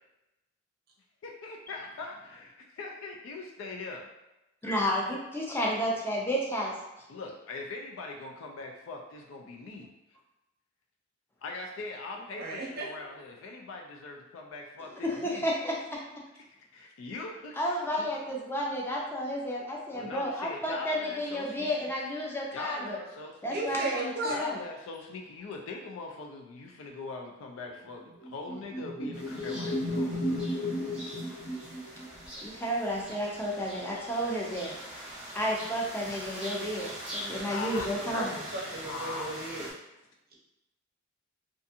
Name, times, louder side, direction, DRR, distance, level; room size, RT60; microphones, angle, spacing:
voice 1, 1.2-4.1 7.1-9.9 11.4-15.4 16.3-18.1 19.9-21.9 22.5-23.6 24.3-30.2 37.5-37.9 38.8-39.4, left 3 dB, 80° left, 1 dB, 0.4 m, -41 dB
voice 2, 4.6-6.7 15.0-16.0 17.6-23.0 23.4-24.6 32.4-34.8 35.3-38.3, equal, 10° left, -3 dB, 0.5 m, -31 dB
voice 3, 12.2-12.9 23.5-24.4 38.0-39.7, right 2 dB, 50° right, -2 dB, 0.6 m, -35 dB
sound 1, 28.2-32.2, left 1 dB, 40° left, 0.9 m, -33 dB
sound 2, 29.1-39.7, equal, 5° right, 0.8 m, -43 dB
2.5 x 2.3 x 2.7 m, 0.95 s
head